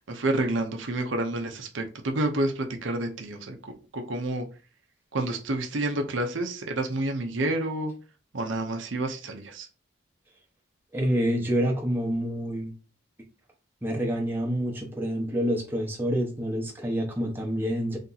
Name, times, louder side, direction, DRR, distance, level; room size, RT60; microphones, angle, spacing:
voice 1, 0.1-4.5 5.1-7.9 8.3-9.7, right 2 dB, 75° right, 0.7 m, -29 dB
voice 2, 10.9-12.7 13.8-18.0, equal, 10° right, 0.9 m, -27 dB
3.5 x 2.8 x 3.9 m
head